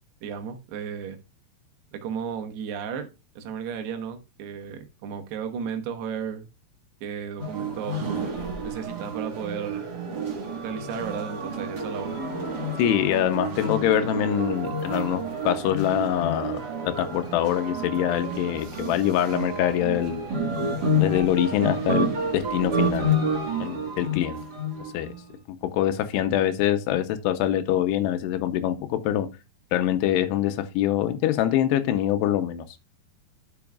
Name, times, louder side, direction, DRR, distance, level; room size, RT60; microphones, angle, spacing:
voice 1, 0.2-1.2 1.9-3.1 3.4-6.5 7.0-8.1 8.6-9.9 10.6-12.2, right 7 dB, 80° right, 3.2 m, -34 dB
sound 1, 7.4-25.2, right 1 dB, 60° right, 1.0 m, -29 dB
voice 2, 12.8-20.3 21.0-23.1 23.6-24.4 24.9-25.1 25.5-29.3 29.7-32.6, left 11 dB, 90° left, 2.9 m, -24 dB
12.0 x 6.1 x 2.4 m
omnidirectional pair, 4.7 m